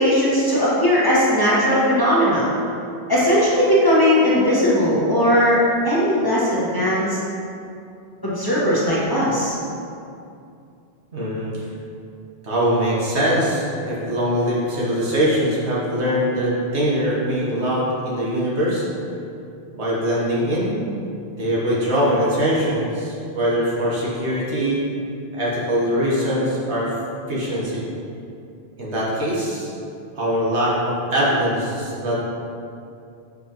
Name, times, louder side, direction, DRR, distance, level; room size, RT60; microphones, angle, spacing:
voice 1, 0.0-2.5 3.1-5.6 5.8-7.2 8.2-9.6, equal, 20° left, -9 dB, 1.2 m, -18 dB
voice 2, 11.1-11.7 12.4-18.8 19.7-20.7 21.4-24.8 25.3-26.9 27.3-27.8 28.8-29.7 30.1-32.2, equal, 80° right, -6 dB, 1.6 m, -22 dB
6.6 x 5.1 x 3.0 m, 2.5 s
omnidirectional pair, 1.1 m